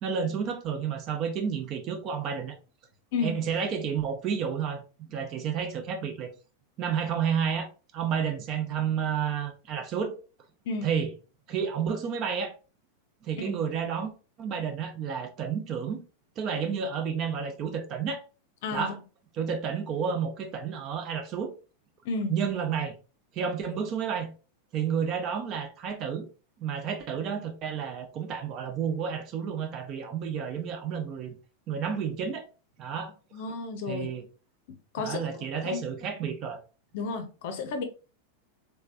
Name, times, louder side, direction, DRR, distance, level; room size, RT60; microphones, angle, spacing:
voice 1, 0.0-2.6 3.2-4.8 5.1-6.3 6.8-7.7 7.9-10.2 10.8-11.1 11.5-12.5 13.2-14.1 14.4-16.0 16.4-18.2 18.7-19.0 19.3-21.5 22.3-22.9 23.3-24.3 24.7-26.3 26.6-31.3 31.7-32.5 32.8-33.1 33.9-34.2 35.0-36.6, right 7 dB, 35° right, 0.7 m, -30 dB
voice 2, 33.3-34.1 34.9-35.2 35.6-35.8 36.9-37.8, left 4 dB, 50° left, 0.6 m, -32 dB
3.3 x 3.3 x 2.5 m
figure-of-eight pair, 90°, 0 cm